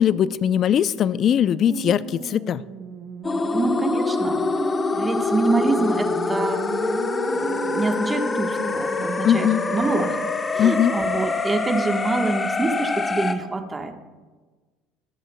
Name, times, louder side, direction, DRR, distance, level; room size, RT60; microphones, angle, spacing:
voice 1, 0.0-2.6 9.2-9.6 10.6-10.9, left 9 dB, 50° left, 18 dB, 0.4 m, -20 dB
sound 1, 1.7-10.2, right 6 dB, 55° right, 1.2 m, -35 dB
sound 2, 3.2-13.3, left 3 dB, 25° left, 0.9 m, -25 dB
voice 2, 3.5-4.5 4.9-6.6 7.3-10.2 10.5-14.0, right 3 dB, 20° right, 5 dB, 1.2 m, -26 dB
24.0 x 8.2 x 2.2 m, 1.3 s
hypercardioid pair, 75°, 0 cm